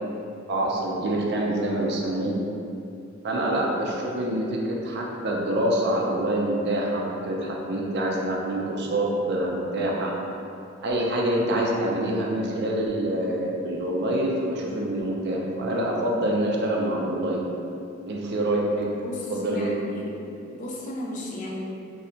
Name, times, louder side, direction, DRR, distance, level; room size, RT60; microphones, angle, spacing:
voice 1, 0.5-2.4 3.2-10.1 10.8-17.4 18.1-18.9 19.3-19.7, right 1 dB, 55° right, -1 dB, 0.4 m, -26 dB
voice 2, 18.8-21.7, left 1 dB, 40° left, -3 dB, 0.4 m, -35 dB
2.7 x 2.1 x 2.7 m, 2.6 s
head